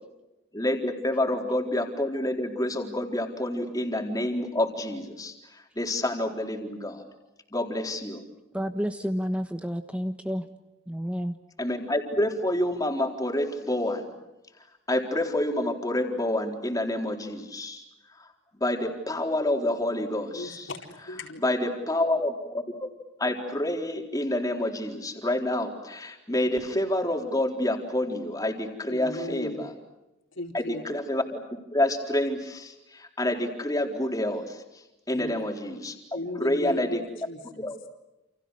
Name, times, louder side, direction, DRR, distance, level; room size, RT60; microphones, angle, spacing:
voice 1, 0.5-7.0 7.5-8.2 11.6-14.1 14.9-17.8 18.6-20.7 21.4-22.6 23.2-29.7 30.5-31.4 31.7-34.6 35.1-36.0 36.4-37.0 37.6-37.8, left 1 dB, 20° left, 2 dB, 4.1 m, -28 dB
voice 2, 8.5-10.5 10.9-11.4, equal, 5° right, 7 dB, 1.2 m, -30 dB
voice 3, 20.3-21.4 28.9-29.7 30.3-30.8 35.1-35.4 36.1-37.0 37.3-37.7, left 2 dB, 70° left, 3 dB, 4.3 m, -36 dB
29.5 x 29.0 x 6.5 m, 0.97 s
head